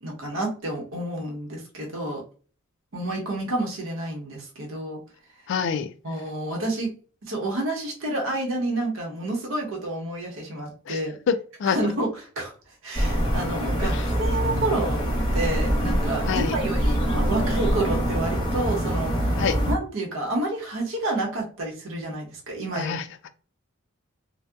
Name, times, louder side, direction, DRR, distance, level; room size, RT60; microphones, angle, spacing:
voice 1, 0.0-2.2 2.9-5.0 6.0-6.9 7.3-11.1 11.6-12.1 12.4-12.5 12.8-19.4 19.7-22.9, right 2 dB, 75° right, -1 dB, 0.9 m, -29 dB
voice 2, 5.5-5.9 10.9-11.0 11.3-11.8 13.8-14.1 16.3-16.6 19.4-19.6 22.7-23.3, left 6 dB, 60° left, 9 dB, 0.3 m, -27 dB
sound 1, 12.9-19.7, equal, 20° left, 0.8 m, -24 dB
2.7 x 2.1 x 2.3 m, 0.39 s
head